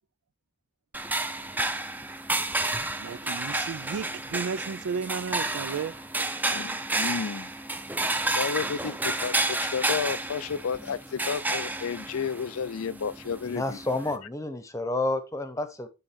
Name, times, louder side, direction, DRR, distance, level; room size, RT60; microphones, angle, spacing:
sound 1, 0.9-14.2, right 2 dB, 10° right, 0.6 m, -31 dB
voice 1, 3.0-6.0, right 6 dB, 80° right, 0.4 m, -33 dB
voice 2, 6.5-7.5 8.3-13.8, left 6 dB, 85° left, 0.5 m, -32 dB
voice 3, 13.5-15.9, left 2 dB, 15° left, 0.9 m, -30 dB
11.0 x 3.7 x 4.3 m
head